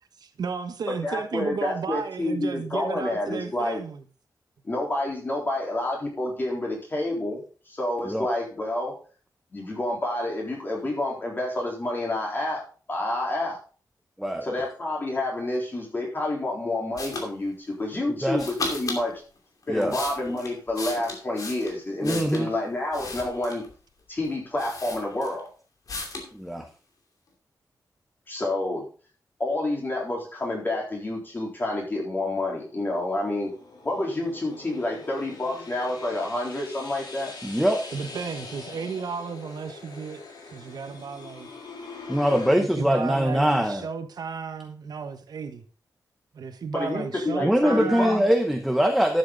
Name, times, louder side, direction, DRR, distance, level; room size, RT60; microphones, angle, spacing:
voice 1, 0.2-4.0 37.9-40.2 40.5-41.5 42.4-45.6 46.3-48.3, right 5 dB, 70° right, 8 dB, 1.2 m, -34 dB
voice 2, 0.9-3.8 4.6-8.9 9.5-12.6 12.9-13.6 14.4-19.2 19.7-23.6 24.1-25.5 28.3-28.8 29.4-33.5 33.8-37.3 46.7-48.2, left 1 dB, 30° left, -2 dB, 3.9 m, -29 dB
sound 1, 17.0-17.3 18.4-19.0 19.6-22.5 22.9-23.7 24.2-24.3 24.6-25.5 25.9-26.3, left 3 dB, 55° left, 2.6 m, -35 dB
voice 3, 22.0-22.5 26.3-26.7 37.4-37.8 42.1-43.8 47.4-49.2, equal, ahead, 4 dB, 0.9 m, -23 dB
sound 2, 32.5-42.6, left 4 dB, 85° left, 3.1 m, -43 dB
12.0 x 7.7 x 3.9 m, 0.39 s
wide cardioid pair, 165°, 7 cm